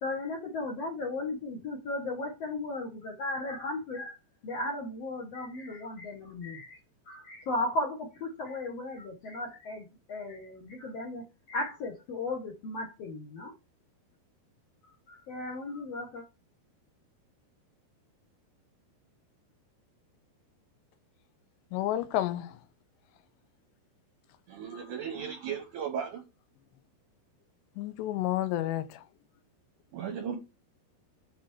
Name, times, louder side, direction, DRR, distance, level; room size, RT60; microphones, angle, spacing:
voice 1, 0.0-4.1 4.4-6.8 7.1-13.5 15.1-16.2, left 2 dB, 65° left, 1.6 m, -36 dB
voice 2, 21.7-22.6 27.8-29.1, left 13 dB, 85° left, 3.0 m, -30 dB
voice 3, 24.5-26.2 29.9-30.4, right 7 dB, 75° right, 1.9 m, -36 dB
8.3 x 4.2 x 4.7 m
omnidirectional pair, 4.9 m